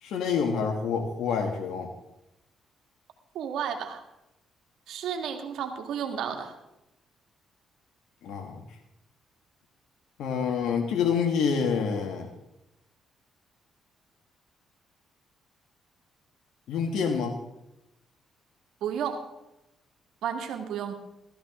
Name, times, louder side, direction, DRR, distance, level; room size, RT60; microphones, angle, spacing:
voice 1, 0.0-1.9 8.2-8.6 10.2-12.3 16.7-17.4, left 6 dB, 80° left, 3 dB, 1.5 m, -27 dB
voice 2, 3.3-4.0 4.9-6.6 18.8-19.2 20.2-20.9, right 8 dB, 80° right, 5 dB, 2.0 m, -32 dB
16.0 x 14.0 x 3.7 m, 0.92 s
cardioid pair, 90°, 0 cm